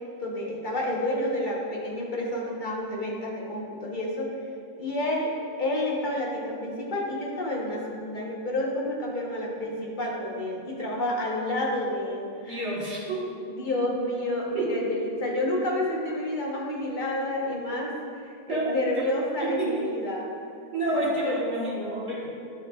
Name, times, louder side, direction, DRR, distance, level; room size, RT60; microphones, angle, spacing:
voice 1, 0.2-4.3 4.8-12.7 13.5-20.3 20.9-21.4, left 1 dB, 40° left, -3 dB, 1.1 m, -30 dB
voice 2, 12.5-13.4 14.5-14.8 18.5-18.7 19.4-20.0 20.7-22.3, right 2 dB, 55° right, -5 dB, 1.7 m, -29 dB
11.5 x 4.5 x 2.3 m, 2.4 s
omnidirectional pair, 1.4 m